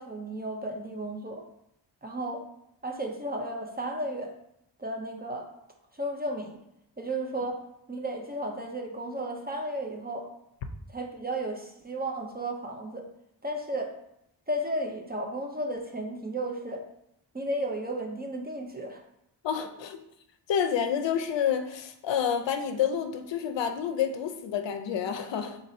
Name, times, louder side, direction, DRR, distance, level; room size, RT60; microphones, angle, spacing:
voice 1, 0.0-1.4 2.0-2.4 2.8-4.3 4.8-5.5 6.0-6.6 7.0-7.6 7.9-10.3 10.9-13.0 13.4-13.9 14.5-16.8 17.3-19.0, right 1 dB, 20° right, 2 dB, 0.5 m, -33 dB
voice 2, 19.4-20.0 20.5-25.6, left 8 dB, 70° left, 7 dB, 0.6 m, -29 dB
3.9 x 2.6 x 4.2 m, 0.78 s
wide cardioid pair, 115°, 46 cm